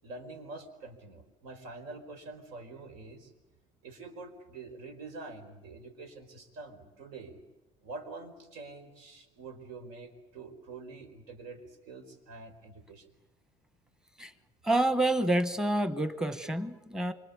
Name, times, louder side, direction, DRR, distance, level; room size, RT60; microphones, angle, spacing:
voice 1, 0.0-3.3 3.8-7.4 7.8-13.1 14.2-14.3, right 3 dB, 85° right, 8 dB, 4.8 m, -46 dB
voice 2, 14.6-17.1, right 1 dB, 5° right, 11 dB, 1.1 m, -28 dB
27.0 x 25.5 x 8.4 m, 1.0 s
cardioid pair, 160°, 16 cm